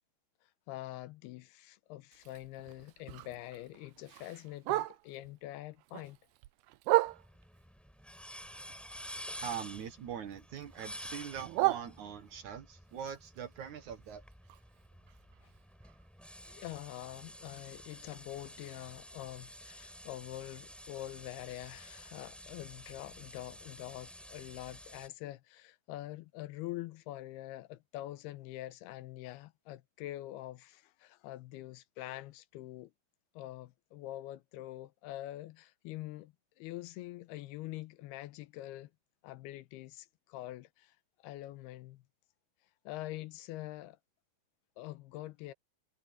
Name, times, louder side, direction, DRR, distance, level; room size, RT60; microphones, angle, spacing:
voice 1, 0.7-6.2 15.4-15.5 16.5-32.9 33.4-38.9 39.2-42.0 42.9-44.0 44.8-45.5, left 15 dB, 90° left, 2.7 m, -45 dB
Bark, 2.1-5.3 5.7-7.6 8.1-9.9 10.2-12.5 12.9-16.9 17.2-17.3 17.6-18.0 18.4-18.5 18.9-19.0 19.5-19.6, right 20 dB, 80° right, 2.5 m, -37 dB
sound 1, 7.1-25.1, equal, ahead, 4.5 m, -50 dB
voice 2, 9.4-14.2, right 8 dB, 60° right, 2.4 m, -42 dB
omnidirectional pair, 4.5 m